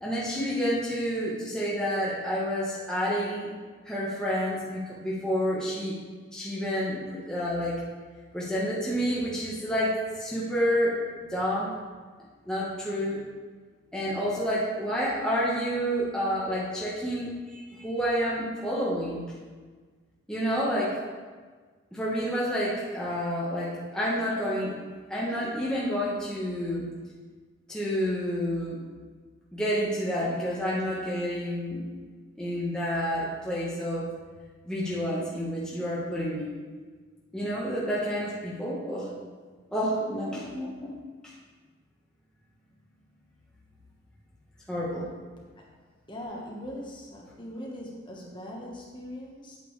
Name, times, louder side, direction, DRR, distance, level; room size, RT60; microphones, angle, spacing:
voice 1, 0.0-3.5 3.8-6.0 6.3-7.8 8.3-11.0 11.3-11.7 12.4-13.2 13.9-19.2 20.3-21.0 21.9-24.8 25.1-26.9 27.7-28.8 29.5-31.8 32.4-34.1 34.6-36.5 37.3-39.1 39.7-40.9 41.2-41.3 44.7-45.1, equal, 5° left, -7 dB, 1.2 m, -29 dB
voice 2, 46.1-49.6, left 1 dB, 25° left, -3 dB, 1.3 m, -40 dB
8.7 x 8.5 x 3.3 m, 1.5 s
head